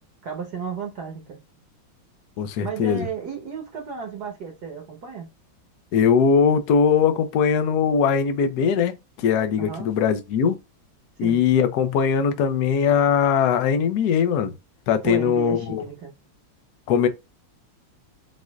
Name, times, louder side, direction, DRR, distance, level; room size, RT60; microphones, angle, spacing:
voice 1, 0.2-1.4 2.6-5.3 9.6-9.9 11.2-11.4 15.0-16.1, right 5 dB, 60° right, 1.5 m, -33 dB
voice 2, 2.4-3.1 5.9-10.6 11.2-14.5 14.9-15.8 16.9-17.1, left 7 dB, 65° left, 1.0 m, -20 dB
6.2 x 2.5 x 2.3 m
omnidirectional pair, 2.2 m